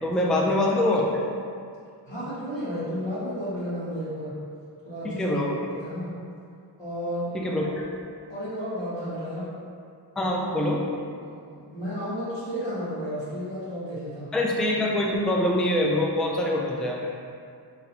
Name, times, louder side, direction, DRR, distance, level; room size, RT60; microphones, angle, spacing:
voice 1, 0.0-1.2 5.0-5.6 7.3-7.9 10.2-10.8 14.3-17.1, left 1 dB, ahead, -2 dB, 0.3 m, -24 dB
voice 2, 2.1-4.3 4.8-5.3 5.7-6.1 6.8-7.3 8.3-9.5 11.2-14.3, equal, 85° left, -10 dB, 1.4 m, -32 dB
3.9 x 3.0 x 2.8 m, 2.3 s
wide cardioid pair, 50°, 43 cm